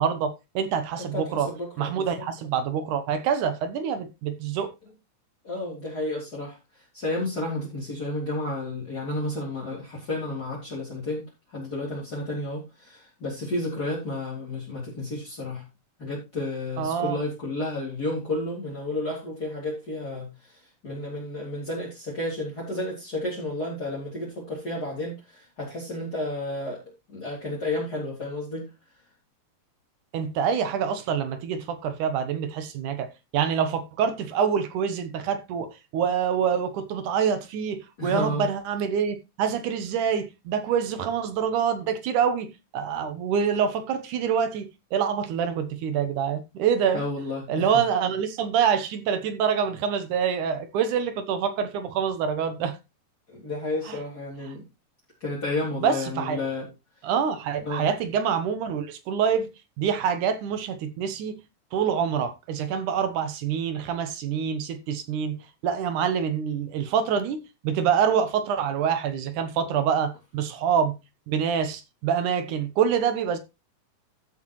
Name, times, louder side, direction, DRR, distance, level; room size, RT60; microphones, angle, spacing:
voice 1, 0.0-1.5 1.8-4.7 16.8-17.2 30.1-47.0 47.5-52.8 53.9-54.0 55.8-56.4 57.0-59.5 59.8-61.3 61.7-65.4 65.6-70.9 71.3-73.4, right 7 dB, 75° right, 2.5 m, -26 dB
voice 2, 1.0-2.2 5.4-6.6 6.9-15.6 16.0-26.8 27.1-28.7 38.0-38.5 46.9-47.8 53.3-54.6 55.2-56.7 57.6-57.9, left 2 dB, 30° left, 3.6 m, -31 dB
13.5 x 7.8 x 3.1 m
omnidirectional pair, 3.6 m